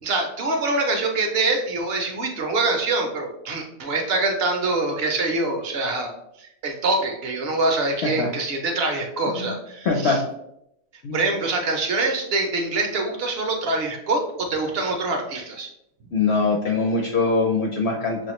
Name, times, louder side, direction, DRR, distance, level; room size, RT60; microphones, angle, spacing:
voice 1, 0.0-6.1 6.4-10.2 11.1-15.7, right 3 dB, 55° right, 3 dB, 0.8 m, -24 dB
voice 2, 9.8-10.2 11.0-11.2 16.1-18.3, left 3 dB, 60° left, 1 dB, 0.7 m, -22 dB
6.2 x 2.4 x 3.0 m, 0.78 s
omnidirectional pair, 1.6 m